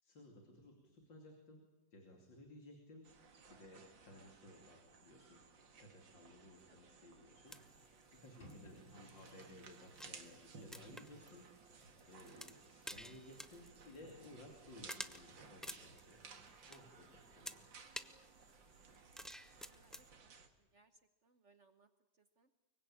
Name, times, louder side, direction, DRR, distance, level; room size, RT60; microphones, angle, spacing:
voice 1, 0.0-1.6 1.9-3.1 3.5-5.4 5.8-11.4 12.1-16.4 16.7-17.6, left 1 dB, 80° left, 2 dB, 3.5 m, -58 dB
sound 1, 3.0-20.5, right 5 dB, 85° right, 2.6 m, -60 dB
sound 2, 7.5-20.1, equal, ahead, 0.4 m, -53 dB
sound 3, 8.4-10.4, left 1 dB, 60° left, 5.2 m, -62 dB
voice 2, 19.6-22.5, right 3 dB, 45° right, 9 dB, 1.2 m, -72 dB
24.5 x 23.5 x 8.6 m, 1.1 s
omnidirectional pair, 2.0 m